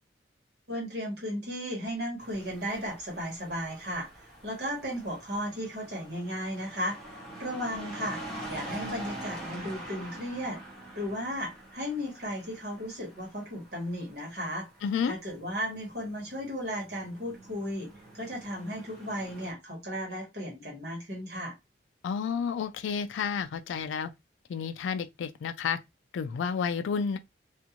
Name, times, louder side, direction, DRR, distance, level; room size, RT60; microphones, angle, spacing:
voice 1, 0.7-4.1 4.4-8.2 8.5-10.6 10.9-14.7 15.0-17.9 18.1-21.5, equal, 55° right, 1.3 m, -35 dB
sound 1, 2.2-19.5, right 1 dB, 5° left, 0.9 m, -45 dB
voice 2, 14.8-15.1 22.0-24.1 24.5-25.8 26.1-27.2, left 6 dB, 80° left, 0.3 m, -31 dB
2.5 x 2.4 x 2.9 m
head